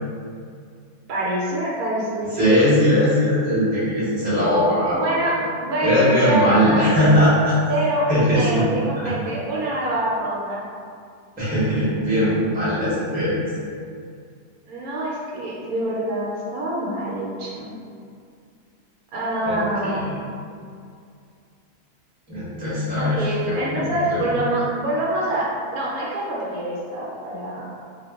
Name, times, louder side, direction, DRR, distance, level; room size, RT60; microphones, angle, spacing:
voice 1, 1.1-2.5 4.9-6.8 7.7-10.6 14.7-17.7 19.1-20.1 23.0-27.7, right 1 dB, 75° right, -5 dB, 1.0 m, -25 dB
voice 2, 2.4-5.0 5.8-7.6 8.1-8.6 9.0-9.1 11.4-13.4 19.4-20.1 22.3-24.4, equal, 10° right, -10 dB, 0.6 m, -20 dB
2.4 x 2.2 x 3.4 m, 2.3 s
omnidirectional pair, 1.7 m